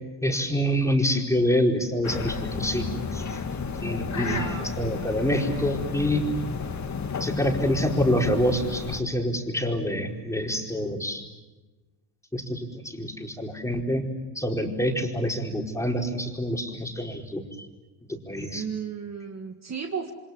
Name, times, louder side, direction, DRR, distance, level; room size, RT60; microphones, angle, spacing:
voice 1, 0.2-2.8 3.1-3.2 3.8-6.2 7.2-11.2 12.3-14.0 14.3-17.4 18.3-18.6, equal, 5° left, 1 dB, 4.7 m, -26 dB
sound 1, 2.0-9.0, left 5 dB, 35° left, 2.9 m, -32 dB
voice 2, 4.1-4.7 18.5-20.1, right 6 dB, 35° right, 4 dB, 2.3 m, -33 dB
28.5 x 26.0 x 7.4 m, 1.2 s
cardioid pair, 100°, 48 cm